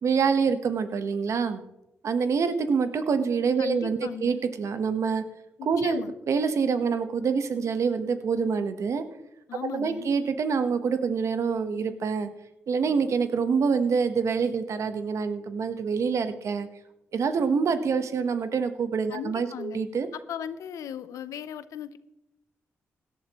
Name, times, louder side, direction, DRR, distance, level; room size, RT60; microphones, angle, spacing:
voice 1, 0.0-1.6 2.0-5.2 5.6-6.0 6.3-9.0 9.7-12.3 12.7-16.7 17.1-20.1, right 5 dB, 65° right, 9 dB, 1.1 m, -26 dB
voice 2, 3.6-4.4 5.6-6.1 9.5-10.1 19.1-19.8 20.3-22.0, left 9 dB, 85° left, 14 dB, 0.6 m, -37 dB
17.0 x 11.5 x 3.0 m, 0.89 s
cardioid pair, 55°, 5 cm